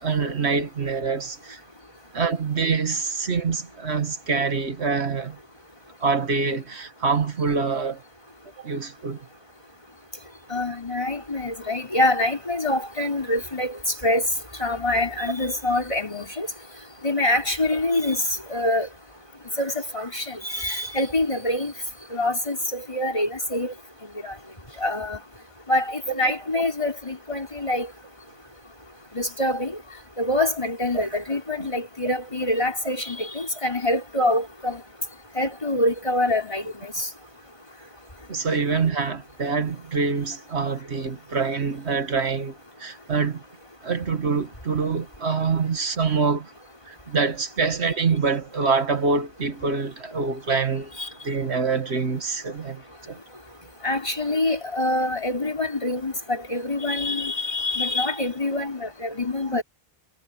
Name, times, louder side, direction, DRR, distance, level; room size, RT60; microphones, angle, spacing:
voice 1, 0.0-1.6 2.1-5.4 6.0-8.0 8.6-9.3 26.1-26.3 30.9-31.1 31.3-31.4 38.3-43.4 43.8-46.5 46.8-50.9 51.2-53.2 59.5-59.6, right 4 dB, 90° right, 2.0 m, -25 dB
voice 2, 10.5-14.3 14.6-16.5 17.0-18.2 18.5-18.9 19.6-21.7 22.1-23.7 24.2-24.3 24.8-25.2 25.7-27.9 29.1-29.8 30.2-34.8 35.4-37.1 51.0-51.1 53.8-59.6, left 1 dB, 30° left, 4.2 m, -25 dB
omnidirectional pair, 1.1 m